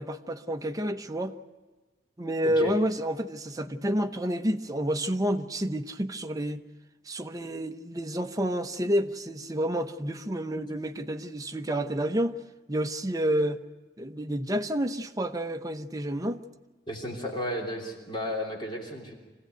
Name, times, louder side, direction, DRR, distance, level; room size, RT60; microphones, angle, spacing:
voice 1, 0.0-1.3 2.2-6.6 7.1-12.4 12.7-13.6 14.0-16.4, equal, 20° right, 0.9 m, -29 dB
voice 2, 2.4-2.7 16.9-19.1, equal, 30° left, 3.3 m, -33 dB
25.5 x 16.5 x 9.2 m
head